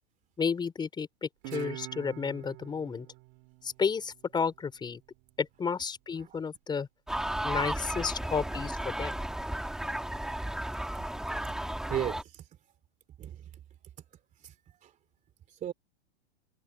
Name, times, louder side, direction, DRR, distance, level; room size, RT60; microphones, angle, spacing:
voice 1, 0.4-3.1 3.6-5.0 5.4-6.9 7.4-9.2 9.6-9.7, left 6 dB, 15° left, 5.0 m, -32 dB
Guitar, 1.4-4.7, right 29 dB, 45° right, 6.1 m, -45 dB
sound 1, 7.1-12.2, right 1 dB, ahead, 2.3 m, -34 dB
voice 2, 8.2-8.6 11.9-12.4 13.2-13.5 14.4-14.5 14.8-14.9 15.5-15.7, right 11 dB, 25° right, 2.8 m, -37 dB
supercardioid pair, 145°, 31 cm